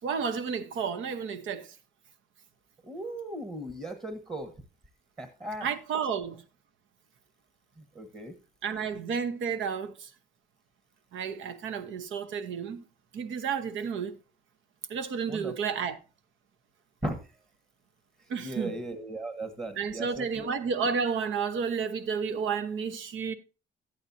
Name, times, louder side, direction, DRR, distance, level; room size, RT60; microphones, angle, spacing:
voice 1, 0.0-1.8 5.6-6.4 8.6-10.1 11.1-12.8 13.1-14.2 14.9-16.0 18.3-18.7 19.8-23.3, right 6 dB, 75° right, 0.9 m, -31 dB
voice 2, 2.8-4.5 5.2-5.7 7.8-8.4 15.3-15.5 17.0-17.2 18.4-20.5, right 1 dB, 25° right, 1.3 m, -37 dB
11.5 x 8.7 x 2.7 m
cardioid pair, 90°, 20 cm